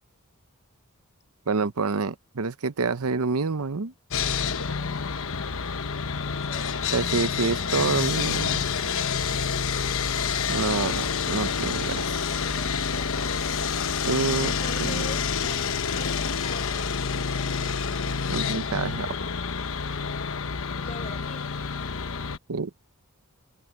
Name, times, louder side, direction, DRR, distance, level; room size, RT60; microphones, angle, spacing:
voice 1, 1.5-3.9 6.9-8.7 10.5-12.2 14.1-14.5 14.8-15.0 18.3-19.1 22.5-22.7, right 4 dB, 75° right, 0.8 m, -27 dB
Sawing, 4.1-22.4, left 6 dB, 65° left, 1.1 m, -28 dB
voice 2, 6.3-6.7 12.3-13.1 14.4-17.0 20.8-21.4, left 3 dB, 30° left, 6.2 m, -43 dB
open air
head